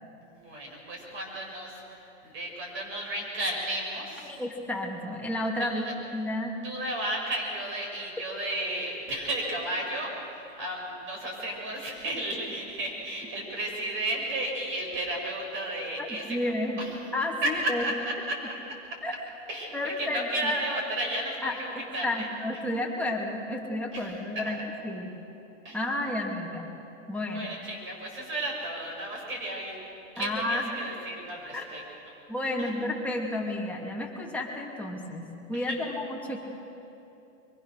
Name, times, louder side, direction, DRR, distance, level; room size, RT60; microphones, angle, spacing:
voice 1, 0.3-4.3 5.6-5.9 6.6-16.9 17.4-19.0 19.5-22.3 22.5-22.6 23.9-24.5 25.6-25.9 27.3-29.8 30.1-31.8 32.6-32.7 35.5-35.9, right 1 dB, 30° right, 0 dB, 6.2 m, -33 dB
voice 2, 4.3-5.8 6.1-6.6 16.0-16.8 17.1-17.8 19.0-19.1 19.7-20.5 21.4-21.5 22.0-24.6 24.8-25.1 25.7-26.7 27.1-27.5 30.2-30.7 31.5-31.6 32.3-36.4, left 1 dB, 5° left, -2 dB, 2.5 m, -31 dB
24.0 x 23.0 x 6.6 m, 2.9 s
supercardioid pair, 140°, 39 cm